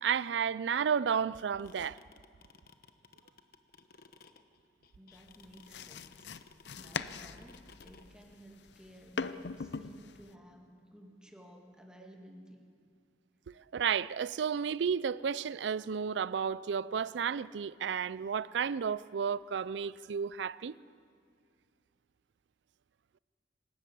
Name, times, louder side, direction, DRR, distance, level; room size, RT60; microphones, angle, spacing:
voice 1, 0.0-2.0 13.6-20.8, right 7 dB, 90° right, 0.4 m, -32 dB
sound 1, 1.3-8.0, left 4 dB, 55° left, 1.1 m, -57 dB
voice 2, 5.0-12.6, equal, 5° right, 2.1 m, -55 dB
sound 2, 5.1-10.3, left 5 dB, 75° left, 0.6 m, -41 dB
26.5 x 13.0 x 8.4 m
head